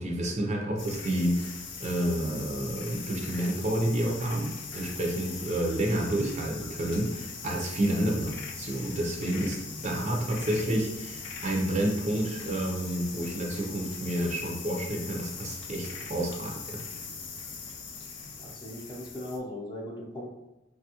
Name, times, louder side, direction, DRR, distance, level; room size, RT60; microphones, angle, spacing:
voice 1, 0.0-16.8, right 1 dB, 35° right, -1 dB, 0.5 m, -30 dB
sound 1, 0.8-19.4, left 5 dB, 65° left, 0.5 m, -41 dB
voice 2, 18.4-20.3, left 1 dB, 25° left, -3 dB, 0.6 m, -38 dB
3.3 x 2.3 x 2.8 m, 1.0 s
head